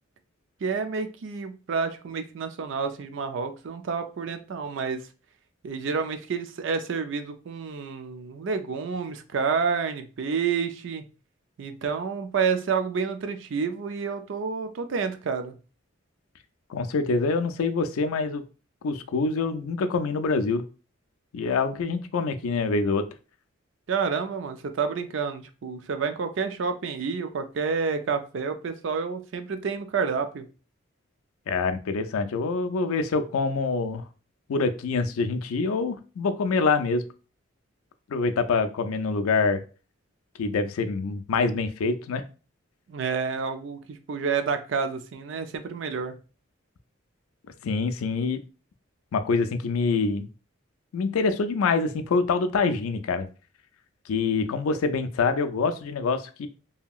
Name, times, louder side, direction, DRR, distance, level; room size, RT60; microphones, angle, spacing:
voice 1, 0.6-5.0 5.6-11.0 11.6-15.5 23.9-30.4 42.9-46.1, right 5 dB, 60° right, 8 dB, 0.4 m, -29 dB
voice 2, 16.7-18.4 18.8-20.6 21.3-23.1 31.5-34.0 34.5-37.0 38.1-39.6 40.4-42.2 47.6-48.4 49.1-50.3 50.9-53.3 54.1-56.5, left 4 dB, 90° left, 8 dB, 0.4 m, -25 dB
2.8 x 2.7 x 2.3 m, 0.35 s
head